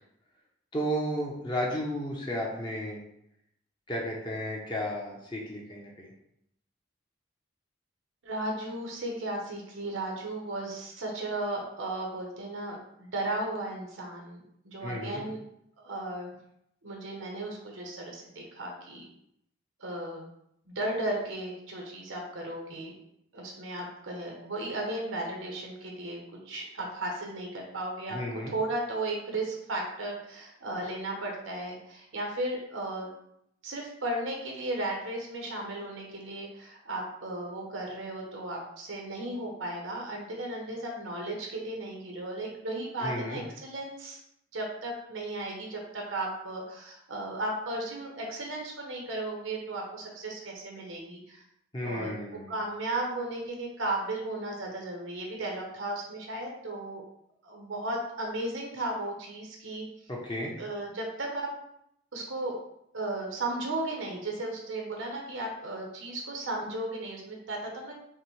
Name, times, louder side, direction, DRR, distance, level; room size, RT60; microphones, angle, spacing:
voice 1, 0.7-3.0 3.9-6.1 14.8-15.2 28.1-28.5 43.0-43.4 51.7-52.5 60.1-60.5, equal, 25° left, -3 dB, 0.7 m, -33 dB
voice 2, 8.2-15.4 15.8-16.3 16.8-19.1 19.8-20.3 20.7-22.9 23.3-26.2 26.4-28.2 28.5-33.1 33.6-44.2 44.5-51.4 51.8-52.1 52.5-57.0 57.4-59.9 60.6-61.5 62.1-62.6 62.9-67.9, right 2 dB, 90° right, 1 dB, 0.9 m, -35 dB
5.6 x 2.1 x 3.1 m, 0.75 s
head